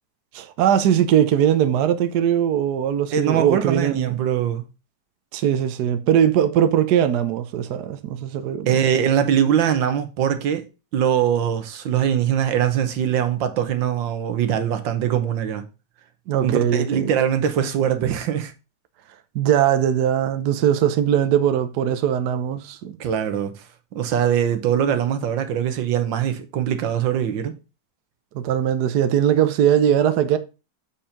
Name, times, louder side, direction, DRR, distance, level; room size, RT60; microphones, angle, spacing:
voice 1, 0.3-4.2 5.3-8.8 16.3-17.1 19.3-23.0 28.3-30.4, right 9 dB, 65° right, 1.2 m, -20 dB
voice 2, 3.1-4.6 8.7-10.6 10.9-15.6 16.4-18.5 23.0-23.6 23.9-27.5, right 9 dB, 85° right, 1.7 m, -22 dB
7.4 x 4.4 x 5.1 m
omnidirectional pair, 2.0 m